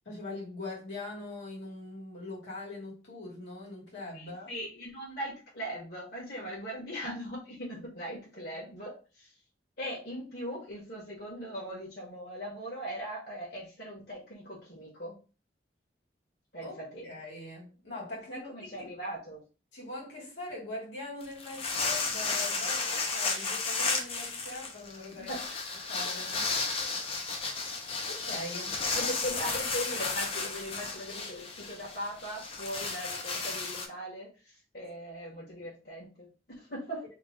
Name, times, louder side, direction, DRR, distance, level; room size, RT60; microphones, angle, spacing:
voice 1, 0.0-4.6 6.4-6.5 16.6-16.7 17.0-18.9 19.7-25.3 25.9-26.5 28.0-29.1, left 2 dB, 80° left, 1.6 m, -42 dB
voice 2, 4.1-9.3 9.8-15.2 16.5-17.1 18.3-19.4 25.2-25.6 28.9-36.3 36.5-37.0, equal, 55° left, 1.4 m, -39 dB
sound 1, 21.2-33.9, left 4 dB, 30° left, 0.5 m, -33 dB
3.0 x 2.4 x 3.6 m
head